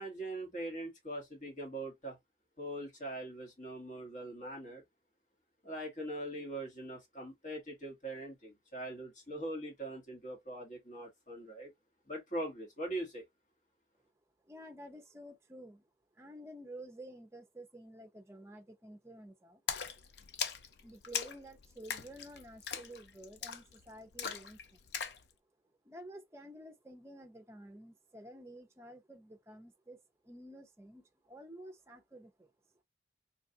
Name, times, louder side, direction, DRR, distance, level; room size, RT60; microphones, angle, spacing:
voice 1, 0.0-2.2 2.6-4.8 5.6-11.7 12.1-13.2, right 1 dB, 45° left, 1.4 m, -42 dB
voice 2, 14.4-15.9 16.2-19.6 20.8-24.8 25.8-30.0 30.2-32.5, right 1 dB, 15° right, 0.6 m, -51 dB
Splash splatter, 19.7-25.2, left 7 dB, 65° left, 0.4 m, -41 dB
3.2 x 2.4 x 2.7 m
head